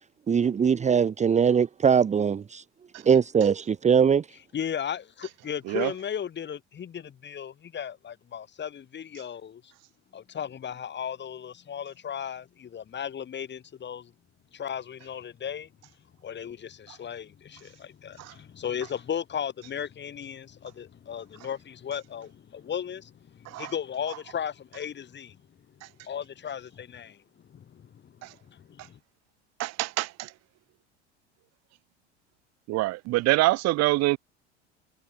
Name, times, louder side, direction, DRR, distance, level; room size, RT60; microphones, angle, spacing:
voice 1, 0.3-2.6 3.0-4.3, right 7 dB, 20° right, 1.2 m, -21 dB
voice 2, 4.5-9.6 10.1-14.1 14.5-15.7 16.2-25.4 26.0-27.2 27.5-28.1 28.5-29.0, left 8 dB, 30° left, 7.2 m, -36 dB
voice 3, 29.6-30.3 32.7-34.2, right 19 dB, 45° right, 2.7 m, -25 dB
figure-of-eight pair, 75°, 35 cm